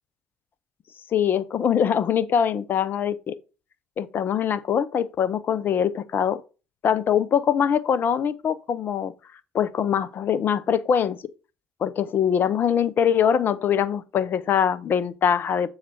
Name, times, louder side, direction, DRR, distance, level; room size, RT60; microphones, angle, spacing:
voice 1, 1.1-3.4 4.0-6.4 6.8-9.1 9.5-11.2 11.8-15.7, left 8 dB, 50° left, 0.8 m, -23 dB
7.5 x 4.1 x 4.4 m
hypercardioid pair, 60°, 4 cm